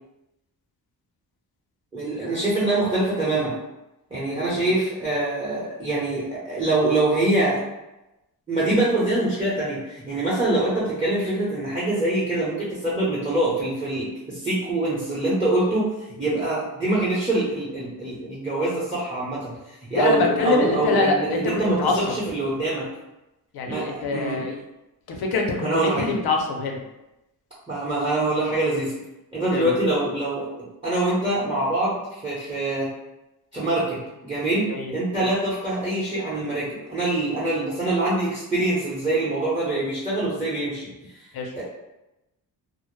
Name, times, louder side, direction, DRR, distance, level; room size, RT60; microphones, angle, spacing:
voice 1, 1.9-3.5 4.1-7.6 8.5-15.9 16.2-22.9 23.6-24.4 25.6-26.1 27.7-28.9 29.3-30.5 30.8-32.9 33.5-40.9 41.6-41.7, right 2 dB, 15° right, -9 dB, 0.7 m, -24 dB
voice 2, 4.3-4.7 19.9-21.9 23.5-24.6 25.1-26.8 29.5-29.7 34.7-35.2 41.3-41.5, left 3 dB, 80° left, 1 dB, 0.6 m, -25 dB
2.1 x 2.0 x 3.0 m, 0.94 s
cardioid pair, 105°, 37 cm